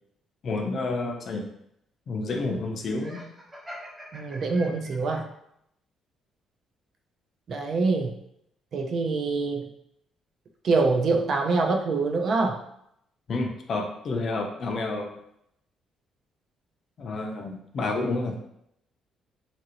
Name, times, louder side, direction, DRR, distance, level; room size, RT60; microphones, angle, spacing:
voice 1, 0.4-1.5 2.1-3.2 13.3-15.2 17.0-18.4, left 3 dB, 45° left, 3 dB, 0.5 m, -29 dB
Laughter, 2.9-5.2, equal, 10° right, 1.0 m, -44 dB
voice 2, 4.1-5.3 7.5-8.1 8.7-9.7 10.6-12.6, right 3 dB, 50° right, 3 dB, 0.4 m, -25 dB
2.8 x 2.5 x 2.8 m, 0.75 s
cardioid pair, 140°, 0 cm